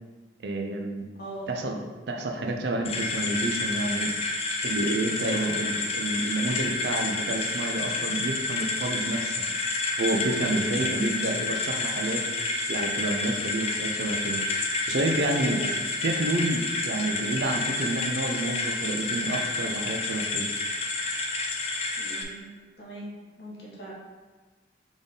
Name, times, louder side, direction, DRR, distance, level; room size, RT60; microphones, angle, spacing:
voice 1, 0.4-1.1 1.5-1.8 2.1-4.1 4.6-9.4 10.0-12.2 12.7-14.4 14.9-15.6 16.0-20.5, right 2 dB, 75° right, 3 dB, 0.5 m, -29 dB
voice 2, 1.2-1.6 5.2-5.6 10.5-11.2 15.4-15.7 22.0-22.4 22.8-23.1 23.4-23.9, right 1 dB, 65° left, -5 dB, 1.2 m, -39 dB
sound 1, 2.8-22.2, left 3 dB, 35° left, 0.4 m, -29 dB
3.6 x 3.5 x 4.0 m, 1.3 s
head